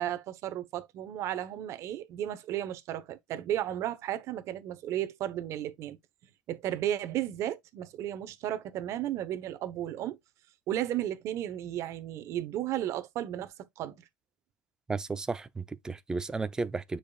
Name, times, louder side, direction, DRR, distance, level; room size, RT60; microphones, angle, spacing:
voice 1, 0.0-6.0 6.5-10.2 10.7-14.0, right 12 dB, 30° right, 1.1 m, -34 dB
voice 2, 14.9-17.0, right 4 dB, 5° right, 0.5 m, -33 dB
9.5 x 5.1 x 2.4 m
supercardioid pair, 165°, 10 cm